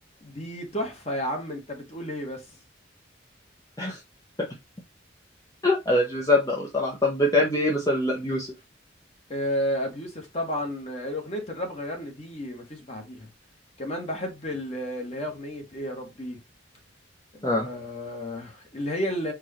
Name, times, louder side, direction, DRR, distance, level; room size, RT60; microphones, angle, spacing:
voice 1, 0.2-2.6 9.3-13.3 13.8-16.4 17.3-19.3, equal, 35° left, 1.4 m, -32 dB
voice 2, 5.6-8.5 17.4-17.7, left 1 dB, 20° left, 0.8 m, -23 dB
4.6 x 2.5 x 4.3 m
head